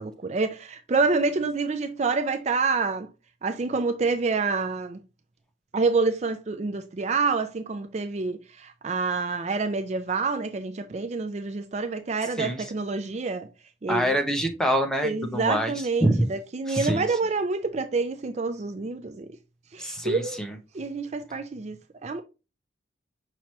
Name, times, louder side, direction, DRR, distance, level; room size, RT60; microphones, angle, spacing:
voice 1, 0.0-3.1 3.4-5.0 5.7-13.5 13.8-14.2 15.0-19.4 19.7-20.4 20.7-21.8 22.0-22.2, right 4 dB, 35° right, 0.4 m, -27 dB
voice 2, 12.4-12.7 13.9-16.2 16.7-17.0 19.8-20.6, equal, 5° left, 0.7 m, -26 dB
5.8 x 3.0 x 3.0 m
head